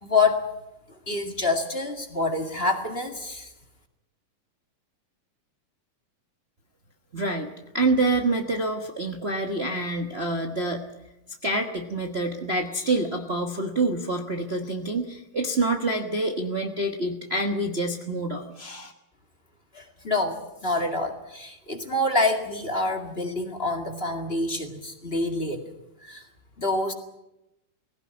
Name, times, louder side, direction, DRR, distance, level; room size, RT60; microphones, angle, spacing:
voice 1, 0.0-0.4 1.1-3.5 19.7-25.6 26.0-26.2 26.6-26.9, left 2 dB, 25° left, 5 dB, 1.9 m, -27 dB
voice 2, 7.1-10.9 11.4-18.9, right 2 dB, 60° right, 2 dB, 0.6 m, -27 dB
20.0 x 17.0 x 9.5 m, 0.92 s
omnidirectional pair, 3.4 m